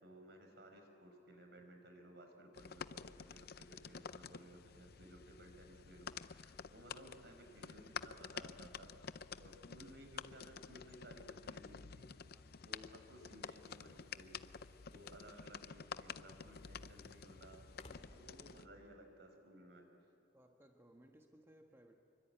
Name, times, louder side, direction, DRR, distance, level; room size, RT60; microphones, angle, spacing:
voice 1, 0.0-12.1 12.7-14.4 14.9-19.9, equal, 65° right, 5 dB, 4.8 m, -58 dB
sound 1, 2.5-18.7, left 6 dB, 55° left, 0.6 m, -50 dB
voice 2, 12.3-12.7 20.3-22.0, right 1 dB, 15° right, 2 dB, 1.4 m, -64 dB
sound 2, 13.2-18.9, left 1 dB, 35° left, 2.4 m, -65 dB
26.5 x 24.0 x 9.1 m, 2.8 s
head